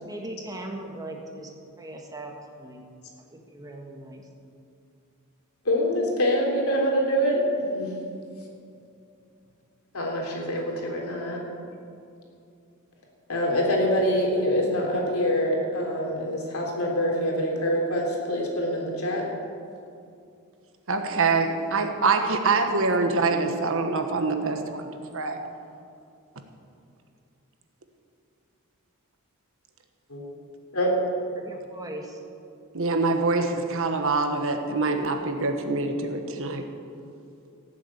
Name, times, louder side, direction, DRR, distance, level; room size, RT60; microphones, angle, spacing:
voice 1, 0.0-1.5 1.8-2.9 3.2-4.3 31.4-32.2, right 1 dB, 15° right, 2 dB, 1.7 m, -39 dB
voice 2, 5.6-7.9 9.9-11.4 13.3-19.2 30.1-30.2 30.7-30.9, equal, 75° left, -1 dB, 3.4 m, -25 dB
voice 3, 20.9-25.4 32.7-36.7, right 3 dB, 65° right, 6 dB, 1.4 m, -25 dB
17.0 x 7.3 x 8.8 m, 2.5 s
head